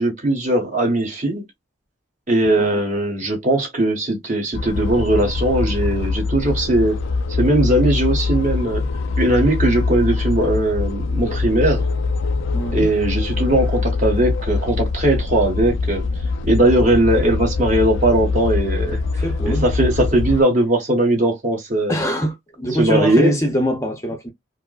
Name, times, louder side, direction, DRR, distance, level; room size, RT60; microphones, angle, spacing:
voice 1, 0.0-1.4 2.3-7.0 7.3-8.8 9.2-11.9 12.7-16.0 16.5-19.0 19.4-22.0 22.7-23.4, right 1 dB, 40° right, 1.4 m, -19 dB
sound 1, 4.5-20.4, left 3 dB, 75° left, 0.4 m, -23 dB
voice 2, 12.5-12.9 19.2-19.6 21.9-24.3, equal, 15° left, 0.6 m, -23 dB
4.6 x 2.1 x 2.3 m
head